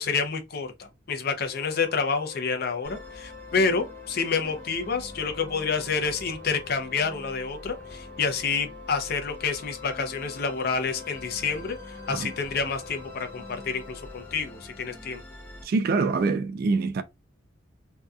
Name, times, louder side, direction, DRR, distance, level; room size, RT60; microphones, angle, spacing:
voice 1, 0.0-15.2, left 5 dB, 55° left, 0.5 m, -28 dB
Wind instrument woodwind instrument, 1.4-14.8, left 6 dB, 70° left, 1.0 m, -46 dB
Musical instrument, 2.8-15.6, left 1 dB, 15° left, 0.8 m, -46 dB
voice 2, 15.6-17.0, right 4 dB, 50° right, 0.3 m, -25 dB
2.7 x 2.2 x 2.3 m
head